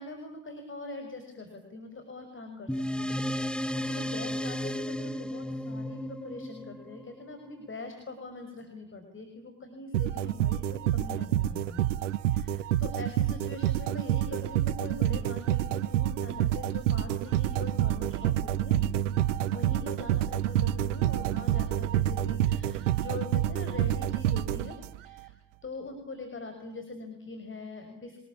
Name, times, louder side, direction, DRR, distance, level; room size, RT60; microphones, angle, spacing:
voice 1, 0.0-2.7 3.0-3.2 3.5-11.8 12.2-18.8 19.5-25.4 25.6-28.2, left 2 dB, 35° left, 6 dB, 6.0 m, -43 dB
sound 1, 2.7-7.5, equal, 5° left, 1.5 m, -34 dB
sound 2, 9.9-25.2, right 12 dB, 85° right, 1.0 m, -28 dB
26.5 x 20.5 x 8.7 m, 0.84 s
hypercardioid pair, 55°, 36 cm